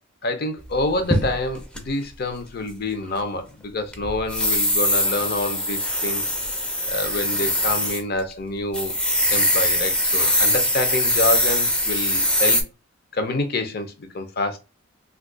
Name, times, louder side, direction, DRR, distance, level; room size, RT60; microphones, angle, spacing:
voice 1, 0.2-6.2 6.9-8.9 9.3-12.6 13.1-14.6, left 2 dB, 50° left, 0.6 m, -27 dB
sound 1, 0.8-1.8 3.9-8.0 8.3-8.4 8.7-12.6, left 1 dB, 5° left, 0.4 m, -22 dB
2.7 x 2.4 x 3.7 m
head